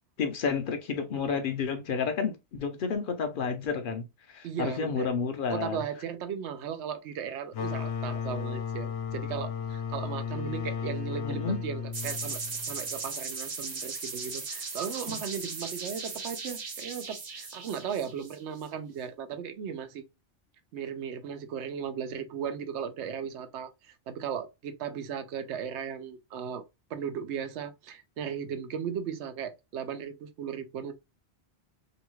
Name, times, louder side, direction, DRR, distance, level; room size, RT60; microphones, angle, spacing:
voice 1, 0.2-5.8 11.2-11.6 15.1-15.2, left 5 dB, 60° left, 0.6 m, -31 dB
voice 2, 4.4-5.1 5.5-20.0 20.7-26.6 26.9-30.9, right 7 dB, 85° right, 0.9 m, -36 dB
sound 1, 7.5-13.0, left 6 dB, 90° left, 0.9 m, -34 dB
sound 2, 11.9-18.6, right 4 dB, 55° right, 1.2 m, -37 dB
2.7 x 2.2 x 3.0 m
omnidirectional pair, 1.1 m